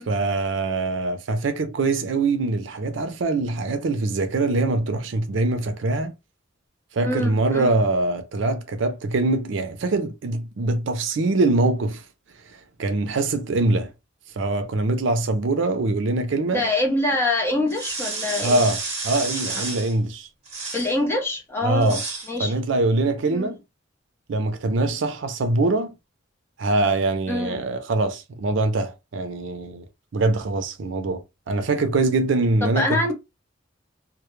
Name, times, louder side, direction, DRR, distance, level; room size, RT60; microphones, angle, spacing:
voice 1, 0.1-6.1 6.9-12.0 12.8-13.9 14.4-16.7 18.4-20.3 21.6-22.0 22.4-23.6 24.3-25.9 26.6-29.8 30.1-33.1, right 2 dB, 70° right, 0.5 m, -23 dB
voice 2, 7.0-7.8 16.5-18.6 19.5-19.6 20.7-22.0 22.3-22.5 23.3-23.5 27.3-27.6 32.6-33.1, left 2 dB, 10° left, 0.6 m, -25 dB
sound 1, 17.7-19.9 20.5-20.9 21.8-22.3, right 3 dB, 35° right, 0.9 m, -31 dB
2.2 x 2.0 x 3.0 m
head